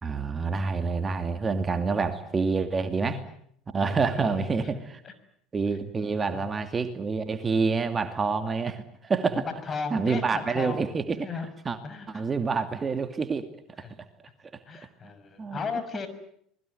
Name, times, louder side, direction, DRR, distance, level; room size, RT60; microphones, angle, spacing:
voice 1, 0.0-3.2 3.7-5.0 5.5-9.5 9.9-11.3 11.6-11.8 12.1-13.5 13.8-13.9 15.4-15.6, right 4 dB, 25° right, 9 dB, 2.4 m, -27 dB
voice 2, 2.9-3.2 3.8-4.7 5.0-5.1 6.1-6.6 9.3-10.8 11.2-11.5 11.8-12.2 13.8-13.9 14.7-16.1, left 5 dB, 35° left, 11 dB, 5.9 m, -36 dB
26.0 x 21.0 x 9.4 m, 0.69 s
hypercardioid pair, 75°, 0 cm